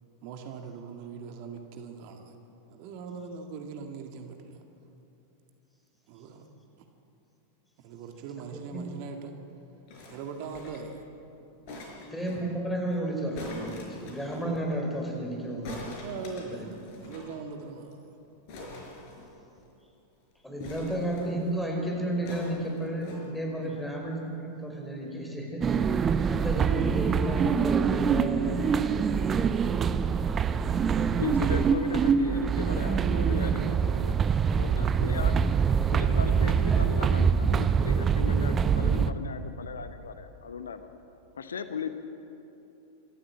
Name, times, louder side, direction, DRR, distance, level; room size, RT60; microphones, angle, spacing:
voice 1, 0.2-2.3 2.7-4.4 6.1-6.4 7.8-9.3 10.1-11.0 11.7-12.0 16.0-18.0 23.6-23.8, right 5 dB, 45° right, 4 dB, 1.9 m, -41 dB
voice 2, 8.5-8.8 12.1-15.8 16.5-16.6 20.4-28.7, right 1 dB, 5° left, 0 dB, 4.8 m, -32 dB
sound 1, 9.9-11.0 11.7-12.4 13.3-14.5 15.6-17.3 17.6-17.7 17.9-18.1 18.5-19.7 20.6-21.5 22.3-23.2 24.0-24.1, left 2 dB, 45° left, 5.2 m, -44 dB
sound 2, 25.6-39.1, right 6 dB, 25° right, 0.7 m, -25 dB
voice 3, 31.2-34.2 34.6-35.3 35.6-40.9 41.3-41.9, left 6 dB, 70° left, 10 dB, 1.0 m, -37 dB
27.0 x 13.5 x 7.6 m, 2.9 s
figure-of-eight pair, 90°, 0 cm